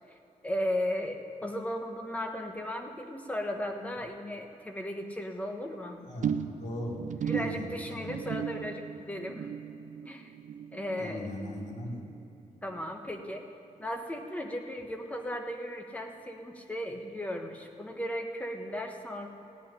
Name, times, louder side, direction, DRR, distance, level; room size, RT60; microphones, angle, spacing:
voice 1, 0.4-6.0 7.2-9.5 10.0-10.3 10.7-11.3 12.6-13.4 13.8-19.3, left 1 dB, 10° left, 3 dB, 1.1 m, -36 dB
voice 2, 6.0-7.0 7.3-8.1 11.0-12.0, left 1 dB, 70° left, -3 dB, 2.8 m, -39 dB
sound 1, 6.2-12.8 13.1-13.5 13.8-13.9, right 8 dB, 70° right, 0.5 m, -37 dB
16.0 x 5.6 x 9.9 m, 2.8 s
wide cardioid pair, 175°, 13 cm